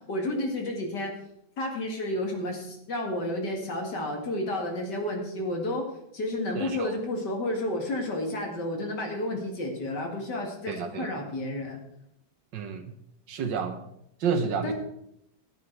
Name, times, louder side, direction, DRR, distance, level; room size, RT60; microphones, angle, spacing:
voice 1, 0.1-1.1 1.6-5.9 6.1-11.8 14.6-14.7, left 1 dB, 55° left, 2 dB, 2.8 m, -31 dB
voice 2, 6.6-6.9 10.7-11.1 12.5-12.9 13.3-13.8 14.2-14.7, right 6 dB, 65° right, 7 dB, 1.7 m, -30 dB
13.0 x 9.2 x 4.7 m, 0.76 s
omnidirectional pair, 2.2 m